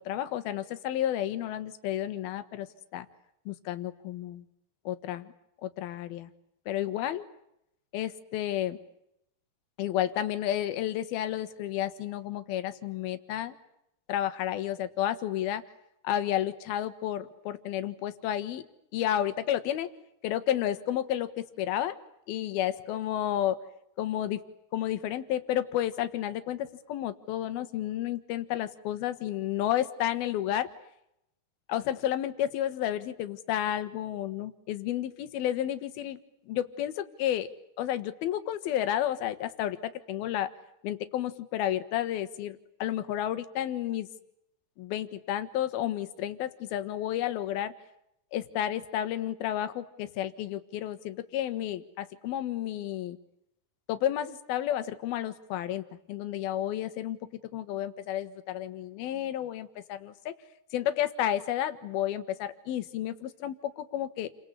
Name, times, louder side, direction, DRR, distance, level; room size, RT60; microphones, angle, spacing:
voice 1, 0.0-2.7 2.9-3.1 3.5-4.4 4.9-5.3 5.6-6.3 6.7-7.2 7.9-8.8 9.8-13.6 14.1-15.6 16.0-18.6 18.9-19.9 20.2-22.0 22.3-23.6 24.0-24.4 24.7-30.7 31.7-36.2 36.5-37.5 37.8-40.5 40.8-44.1 44.8-47.7 48.3-53.2 53.9-55.8 56.1-57.2 57.5-60.3 60.7-64.3, left 11 dB, 70° left, 11 dB, 3.1 m, -31 dB
29.5 x 23.5 x 8.2 m, 0.80 s
omnidirectional pair, 4.7 m